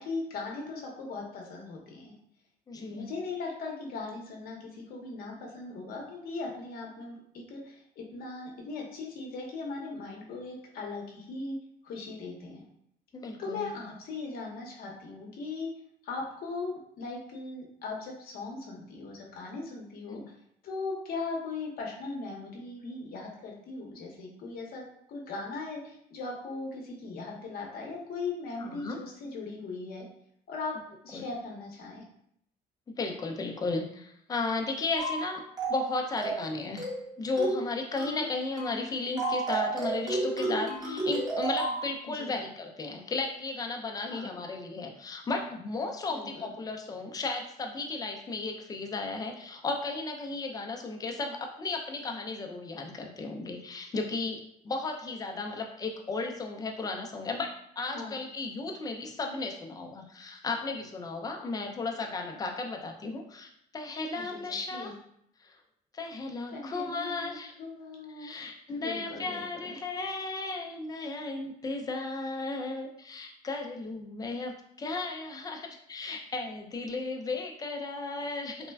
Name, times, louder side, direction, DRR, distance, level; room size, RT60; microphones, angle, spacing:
voice 1, 0.0-2.1 2.7-11.6 11.8-12.7 13.4-15.7 16.0-20.2 20.6-30.1 30.5-30.7 31.0-32.0 42.0-42.4 44.1-44.4 46.1-46.5 57.9-58.2 64.1-64.2 64.7-64.9 66.5-68.3 68.8-69.8, left 3 dB, 60° left, -1 dB, 0.7 m, -39 dB
voice 2, 2.7-3.1 13.1-13.7 20.1-20.2 28.6-29.0 31.1-31.2 32.9-35.4 35.7-36.9 37.2-64.9 65.4-65.6 65.9-67.5 68.2-78.7, left 3 dB, 20° left, 2 dB, 0.4 m, -35 dB
sound 1, 35.0-35.2 35.6-35.9 36.2-36.5 36.8-37.1 37.4-37.7 38.0-38.2 38.6-38.8 39.2-41.8, right 3 dB, 25° right, 0.8 m, -31 dB
3.3 x 2.1 x 2.2 m, 0.71 s
cardioid pair, 110°, 17 cm